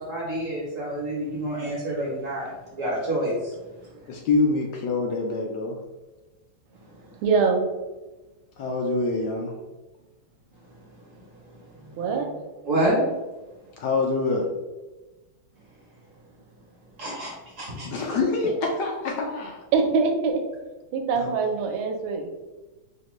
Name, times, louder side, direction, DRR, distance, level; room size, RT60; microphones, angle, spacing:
voice 1, 0.1-3.5 12.6-13.1 17.0-17.3 17.6-18.2, right 1 dB, 55° right, -5 dB, 0.9 m, -27 dB
voice 2, 4.1-5.8 8.6-9.5 13.8-14.5 17.9-19.6 21.1-21.4, left 3 dB, 75° left, 1 dB, 0.9 m, -25 dB
voice 3, 7.2-7.7 12.0-12.4 19.7-20.4 20.9-22.3, right 5 dB, 80° right, 3 dB, 1.4 m, -23 dB
5.0 x 2.1 x 3.0 m, 1.1 s
omnidirectional pair, 2.3 m